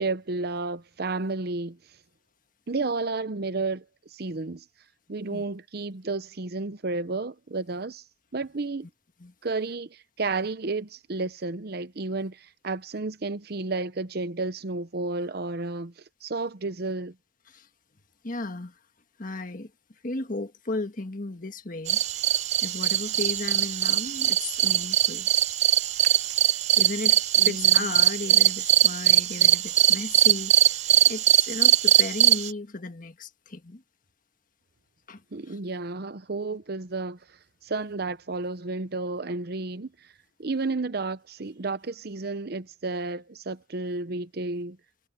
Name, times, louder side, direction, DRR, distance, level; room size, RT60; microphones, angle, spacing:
voice 1, 0.0-1.8 2.7-3.8 4.1-4.6 5.1-8.0 8.3-8.9 9.4-15.9 16.2-17.1 27.4-27.9 35.3-37.2 37.6-39.9 40.4-44.8, right 3 dB, 60° right, 0.8 m, -31 dB
voice 2, 18.2-18.8 19.2-19.7 20.0-22.0 22.6-25.3 26.8-30.8 31.1-33.8 35.1-35.2 35.5-35.6, left 3 dB, 50° left, 1.6 m, -35 dB
sound 1, 21.9-32.5, right 12 dB, 40° right, 0.3 m, -21 dB
head